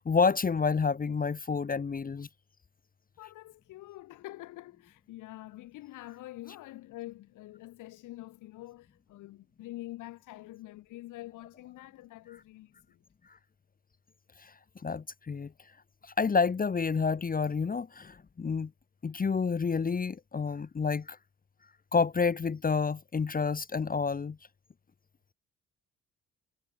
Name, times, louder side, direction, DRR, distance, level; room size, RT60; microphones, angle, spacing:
voice 1, 0.0-2.3 14.4-14.5 14.8-15.5 16.0-18.7 19.0-21.2 21.9-24.4, left 5 dB, 30° left, 1.1 m, -29 dB
voice 2, 3.2-13.0, left 17 dB, 85° left, 1.3 m, -46 dB
cardioid pair, 90°, 30 cm